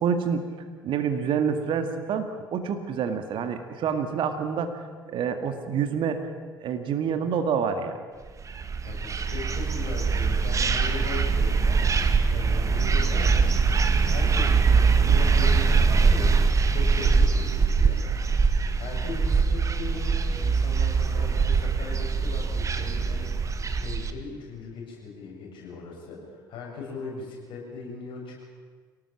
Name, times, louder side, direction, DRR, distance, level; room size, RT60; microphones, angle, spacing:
voice 1, 0.0-0.4 0.8-4.8 5.1-6.2 6.6-8.0 17.2-17.3, right 7 dB, 50° right, 7 dB, 2.0 m, -27 dB
sound 1, 8.4-24.1, right 5 dB, 30° right, 1.7 m, -23 dB
voice 2, 8.8-11.8 12.3-13.3 14.0-18.0 18.8-23.3 23.8-28.5, left 4 dB, 50° left, -1 dB, 7.6 m, -39 dB
24.5 x 18.5 x 7.4 m, 1.5 s
figure-of-eight pair, 55°, 11 cm